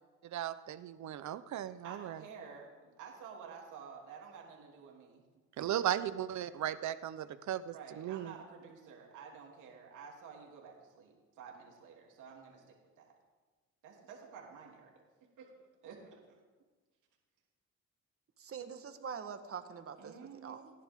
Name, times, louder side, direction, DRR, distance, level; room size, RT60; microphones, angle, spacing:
voice 1, 0.3-2.2 5.6-8.3, right 11 dB, 70° right, 13 dB, 0.9 m, -36 dB
voice 2, 1.8-5.2 7.7-13.1 13.8-16.4 20.0-20.7, right 6 dB, 90° right, -1 dB, 3.2 m, -51 dB
voice 3, 18.4-20.2 20.4-20.7, right 6 dB, 50° right, 8 dB, 1.5 m, -44 dB
29.5 x 11.0 x 3.8 m, 1.4 s
cardioid pair, 90°, 30 cm